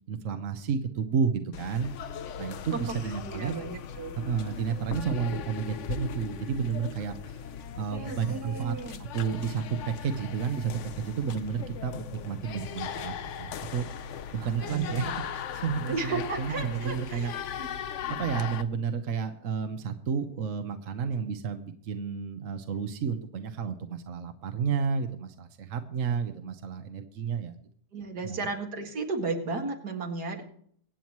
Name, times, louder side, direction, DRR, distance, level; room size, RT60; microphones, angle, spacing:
voice 1, 0.1-3.6 4.1-7.4 7.7-13.9 14.3-17.3 18.1-27.6 28.2-28.5, right 6 dB, 55° right, 7 dB, 1.3 m, -31 dB
sound 1, 1.5-18.6, left 8 dB, 60° left, 0.9 m, -38 dB
voice 2, 2.5-3.0 3.3-4.1 7.9-9.0 14.4-15.1 15.9-17.3 17.6-17.7 27.9-30.4, right 3 dB, 80° right, 3 dB, 2.5 m, -34 dB
24.0 x 9.0 x 3.1 m, 0.62 s
omnidirectional pair, 1.7 m